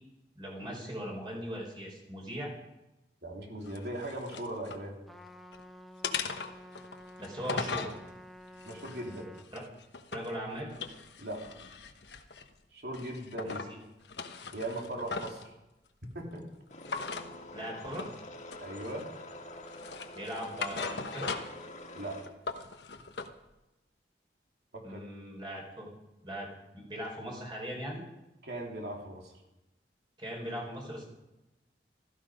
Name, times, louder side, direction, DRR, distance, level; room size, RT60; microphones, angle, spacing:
voice 1, 0.3-2.5 7.2-7.9 9.5-9.6 10.1-10.7 13.4-13.8 17.5-18.1 20.1-21.3 24.8-25.9 26.2-26.5 26.7-28.0 30.2-31.1, equal, 25° right, -1 dB, 4.5 m, -39 dB
voice 2, 3.2-5.0 8.6-9.3 11.2-11.6 12.7-13.6 14.5-15.5 16.1-16.5 18.6-19.1 21.9-22.3 24.7-25.0 28.4-29.3, right 1 dB, 65° right, 0 dB, 3.4 m, -39 dB
sound 1, 3.7-4.8 5.3-5.6 6.0-8.0 8.6-10.4 10.7-12.5 12.9-13.7 14.0-15.5 16.8-17.3 17.9-18.2 18.5-19.2 19.7-21.7 22.0-23.3, left 5 dB, 85° left, 1.2 m, -39 dB
Trumpet, 5.1-9.5, equal, ahead, 0.8 m, -50 dB
sound 2, 16.7-22.2, left 1 dB, 40° left, 2.1 m, -46 dB
16.5 x 14.0 x 5.1 m, 0.98 s
head